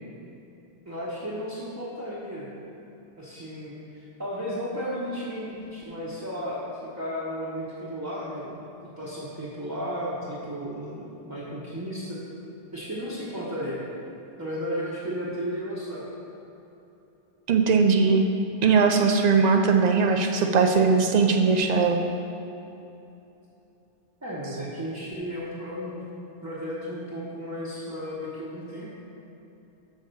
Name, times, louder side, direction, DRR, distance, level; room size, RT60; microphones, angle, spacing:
voice 1, 0.8-2.5 3.2-6.6 6.9-8.7 9.0-12.2 12.7-13.8 14.4-16.0 24.2-26.0 26.4-28.9, equal, 15° right, -8 dB, 1.0 m, -34 dB
voice 2, 17.5-18.2 18.6-22.0, right 5 dB, 75° right, 4 dB, 0.3 m, -20 dB
6.6 x 4.7 x 6.7 m, 2.9 s
omnidirectional pair, 1.3 m